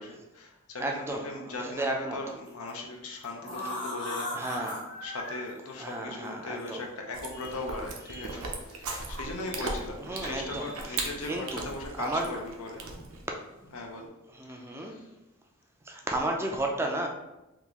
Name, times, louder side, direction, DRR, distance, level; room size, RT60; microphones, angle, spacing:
voice 1, 0.0-12.9 13.7-14.1 14.4-15.1, left 2 dB, 85° left, 1 dB, 0.6 m, -39 dB
voice 2, 0.8-2.2 4.3-4.8 5.8-6.8 8.1-8.4 10.0-11.6 12.0-12.4 14.3-15.0 15.9-17.1, right 1 dB, 10° right, 1 dB, 0.4 m, -33 dB
sound 1, 2.5-2.7 3.2-5.4 6.6-6.7 7.4-7.5 8.5-9.1 10.9-11.7 11.9-12.3 12.8-13.1 13.5-13.8, left 1 dB, 25° left, 0.8 m, -38 dB
Chewing mastication, 7.1-13.3, right 3 dB, 70° right, 0.6 m, -38 dB
3.6 x 2.4 x 2.9 m, 0.97 s
head